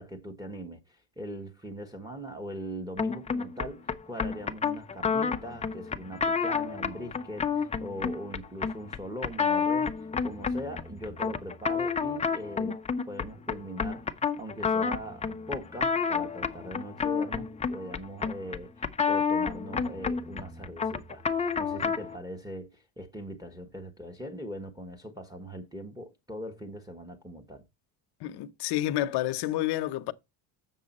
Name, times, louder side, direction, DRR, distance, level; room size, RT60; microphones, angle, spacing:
voice 1, 0.0-9.9 10.2-12.8 13.1-27.6, equal, 10° right, 1.1 m, -41 dB
sound 1, 3.0-22.2, left 5 dB, 15° left, 0.5 m, -30 dB
voice 2, 28.2-30.1, left 14 dB, 60° left, 0.9 m, -29 dB
7.5 x 6.8 x 4.2 m
cardioid pair, 120°, 47 cm